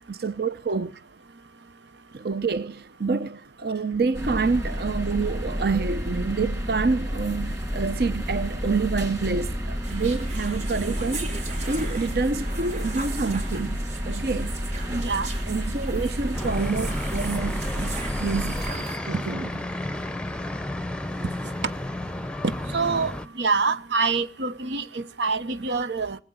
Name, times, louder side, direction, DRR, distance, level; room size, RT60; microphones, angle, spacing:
voice 1, 0.1-0.9 2.1-13.8 14.1-14.6 15.4-18.6 19.0-19.5, right 4 dB, 60° right, 0.7 m, -27 dB
sound 1, 4.1-18.7, equal, 15° right, 3.3 m, -30 dB
sound 2, 9.8-19.0, right 4 dB, 40° right, 3.7 m, -39 dB
voice 2, 14.9-15.3 22.7-23.1 23.4-26.2, right 4 dB, 85° right, 0.9 m, -25 dB
sound 3, 16.3-23.3, left 1 dB, 5° left, 0.7 m, -32 dB
20.5 x 7.9 x 7.9 m
head